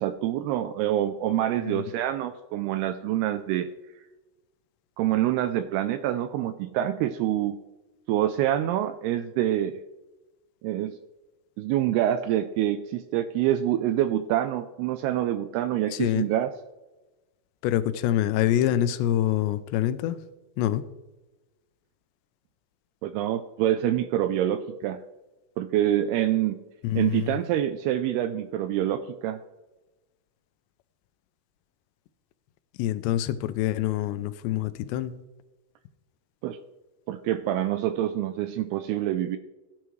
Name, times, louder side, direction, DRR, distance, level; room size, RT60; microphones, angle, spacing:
voice 1, 0.0-3.7 5.0-7.6 8.1-9.8 10.6-11.0 11.6-16.5 23.0-25.0 25.6-26.6 27.0-29.4 36.4-36.6 37.1-39.4, right 12 dB, 85° right, 11 dB, 2.3 m, -26 dB
voice 2, 15.9-16.3 17.6-20.2 20.6-20.8 26.8-27.4 32.8-35.2, left 12 dB, 85° left, 13 dB, 2.8 m, -26 dB
17.0 x 10.5 x 3.2 m, 1.1 s
omnidirectional pair, 5.0 m